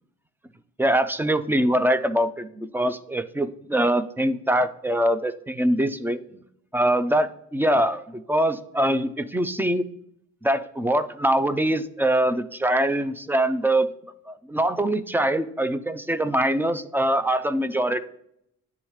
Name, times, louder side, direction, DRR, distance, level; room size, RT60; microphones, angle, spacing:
voice 1, 0.8-6.2 6.7-9.8 10.4-13.9 14.3-18.0, right 1 dB, 5° right, 11 dB, 0.4 m, -23 dB
9.7 x 3.6 x 3.1 m, 0.74 s
cardioid pair, 90°, 30 cm